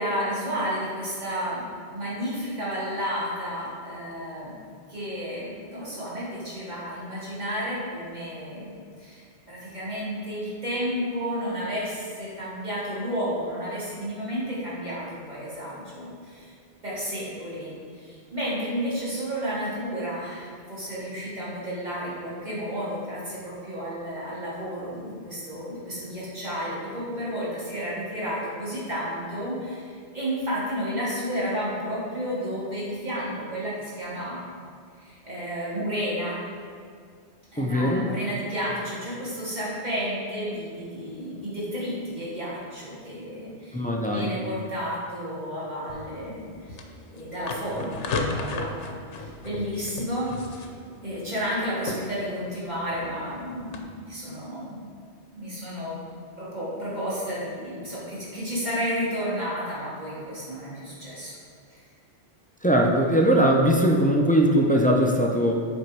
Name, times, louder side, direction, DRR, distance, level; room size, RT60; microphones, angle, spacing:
voice 1, 0.0-1.6 1.9-4.6 4.9-8.7 9.0-16.5 16.8-34.4 35.0-36.4 37.5-46.8 47.1-50.7 51.0-54.9 55.3-56.0 56.4-61.4 61.7-61.8, equal, 40° right, -8 dB, 2.2 m, -32 dB
voice 2, 37.6-38.1 43.7-44.4 62.6-65.5, equal, 10° left, -1 dB, 0.4 m, -20 dB
sound 1, 45.9-53.8, left 3 dB, 85° left, 1.0 m, -36 dB
7.9 x 4.4 x 4.6 m, 2.2 s
omnidirectional pair, 1.1 m